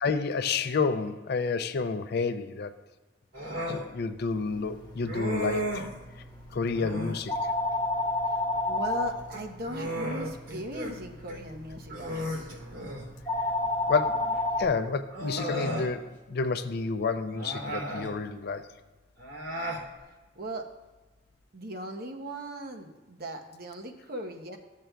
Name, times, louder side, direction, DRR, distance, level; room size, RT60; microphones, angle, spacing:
voice 1, 0.0-2.7 3.7-5.9 6.5-7.3 13.9-18.7, left 4 dB, 55° left, 10 dB, 0.5 m, -30 dB
Human voice, 3.3-3.9 5.1-6.0 6.7-7.2 9.2-10.9 11.3-11.4 11.9-13.1 14.3-14.4 15.1-15.9 17.3-18.1 19.2-19.8, equal, 85° right, 2.9 m, -34 dB
sound 1, 4.3-14.6, left 2 dB, 25° left, 1.7 m, -33 dB
voice 2, 8.3-12.6 20.3-20.7 21.5-24.6, right 1 dB, 55° right, 3 dB, 0.9 m, -38 dB
13.5 x 7.5 x 2.2 m, 1.2 s
head